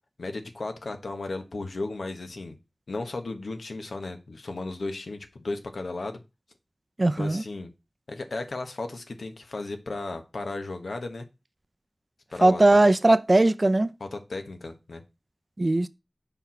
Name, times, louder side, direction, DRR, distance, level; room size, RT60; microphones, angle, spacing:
voice 1, 0.2-2.6 2.9-6.2 7.2-7.7 8.1-11.2 12.3-12.9 14.0-15.0, left 2 dB, 90° left, 1.3 m, -35 dB
voice 2, 7.0-7.4 12.4-13.9 15.6-15.9, right 2 dB, 40° right, 0.6 m, -19 dB
7.0 x 4.5 x 5.8 m
wide cardioid pair, 65°, 0 cm